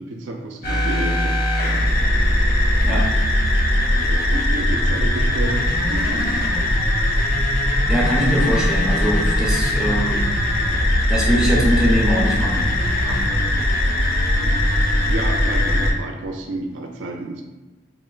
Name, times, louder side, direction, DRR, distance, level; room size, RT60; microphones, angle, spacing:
voice 1, 0.0-1.4 4.0-6.5 14.4-14.6 15.0-17.4, right 2 dB, 65° right, 2 dB, 0.3 m, -30 dB
sound 1, 0.6-15.9, left 1 dB, 50° left, 0.5 m, -19 dB
voice 2, 7.9-10.3 11.1-12.7 13.0-13.2, equal, 5° right, -5 dB, 0.5 m, -22 dB
3.0 x 2.1 x 2.3 m, 1.1 s
head